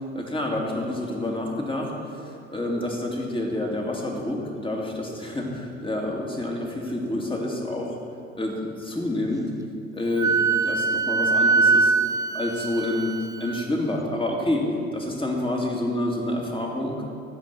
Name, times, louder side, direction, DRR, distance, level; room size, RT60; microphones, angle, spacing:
voice 1, 0.1-8.0 8.4-9.5 9.9-11.9 12.3-14.7 14.9-17.0, left 1 dB, 15° left, 0 dB, 2.5 m, -28 dB
Wind instrument woodwind instrument, 10.2-13.6, right 4 dB, 10° right, 0.5 m, -22 dB
14.0 x 5.3 x 7.6 m, 2.4 s
hypercardioid pair, 55°, 33 cm